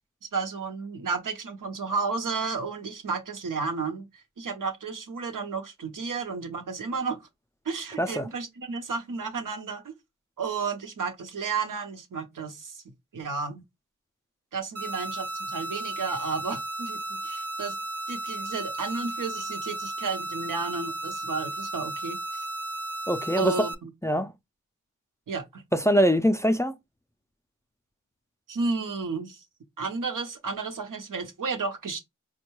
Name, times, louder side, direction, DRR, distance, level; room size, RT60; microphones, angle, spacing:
voice 1, 0.3-7.2 7.6-9.9 10.4-12.8 13.1-13.6 14.5-17.7 18.1-22.4 23.4-23.7 25.3-25.6 28.5-29.4 29.8-32.0, right 4 dB, 90° right, 0.8 m, -32 dB
voice 2, 8.0-8.3 23.1-23.7 24.0-24.3 25.7-26.7, equal, 10° left, 0.3 m, -23 dB
sound 1, 14.7-23.7, right 2 dB, 50° right, 0.5 m, -34 dB
4.3 x 2.2 x 2.9 m
wide cardioid pair, 65°, 31 cm